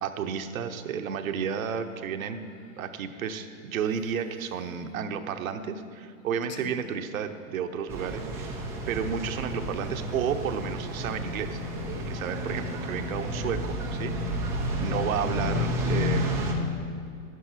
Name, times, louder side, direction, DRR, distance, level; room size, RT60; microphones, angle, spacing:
voice 1, 0.0-2.4 2.8-8.6 8.9-11.6 12.1-14.4 14.8-16.4, right 7 dB, 80° right, 0.9 m, -32 dB
sound 1, 7.9-16.5, right 1 dB, 5° right, 0.3 m, -32 dB
voice 2, 11.8-13.2 14.0-17.1, left 8 dB, 30° left, 0.8 m, -34 dB
11.0 x 9.3 x 4.2 m
hypercardioid pair, 140°, 41 cm